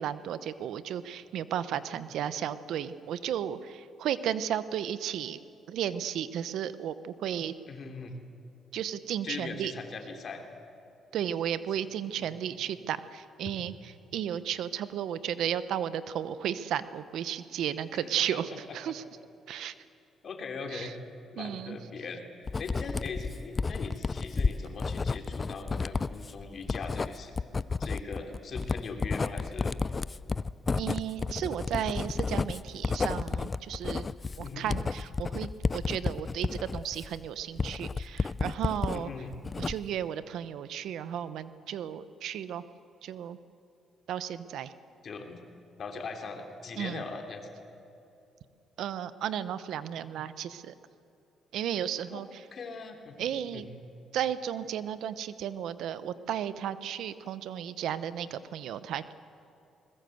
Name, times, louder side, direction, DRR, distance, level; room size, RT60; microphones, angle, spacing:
voice 1, 0.0-5.4 5.7-7.5 8.7-9.7 11.1-19.0 19.5-19.7 20.7-20.9 21.4-21.8 30.8-34.1 34.4-39.1 39.6-42.6 43.0-43.4 44.1-44.7 46.8-47.0 48.8-50.7 51.5-52.4 53.2-53.7 54.1-59.1, right 10 dB, 80° right, 14 dB, 0.9 m, -34 dB
voice 2, 7.7-8.2 9.2-10.4 12.2-12.3 18.0-18.4 18.9-19.0 20.2-20.9 21.3-22.2 22.6-27.3 27.8-29.7 34.4-34.7 38.9-39.3 45.0-45.4 45.8-47.5 52.1-52.2 52.5-53.3 53.5-53.7, left 4 dB, 50° left, 4 dB, 3.2 m, -40 dB
Writing, 22.5-39.0 39.3-40.0, left 4 dB, 30° left, 0.5 m, -32 dB
21.5 x 20.5 x 7.9 m, 2.8 s
cardioid pair, 90°, 0 cm